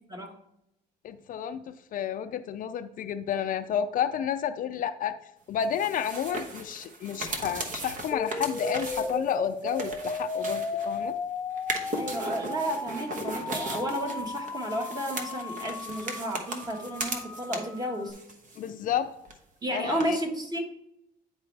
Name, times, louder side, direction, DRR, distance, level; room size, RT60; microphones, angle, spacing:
voice 1, 1.0-5.2 5.5-11.1 18.6-19.1 19.7-20.2, left 9 dB, 55° left, 10 dB, 0.4 m, -31 dB
sound 1, 5.6-11.1 11.6-17.8 18.1-19.0 19.2-19.3 20.0-20.1, right 2 dB, 50° right, 1.1 m, -37 dB
sound 2, 8.1-18.1, left 3 dB, 15° left, 0.6 m, -36 dB
voice 2, 12.0-18.2 19.6-20.6, equal, 20° right, 3 dB, 1.4 m, -32 dB
9.4 x 4.3 x 3.3 m, 0.81 s
cardioid pair, 110°, 17 cm